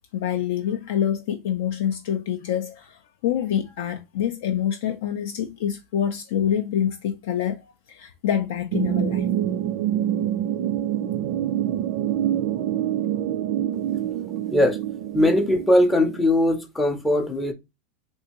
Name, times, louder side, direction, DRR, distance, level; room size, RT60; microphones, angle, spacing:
voice 1, 0.1-9.3, left 9 dB, 70° left, 0.4 m, -26 dB
sound 1, 8.7-16.2, right 11 dB, 55° right, 0.3 m, -26 dB
voice 2, 15.1-17.5, left 1 dB, 5° left, 0.5 m, -20 dB
3.5 x 2.6 x 2.9 m
supercardioid pair, 155°, 0 cm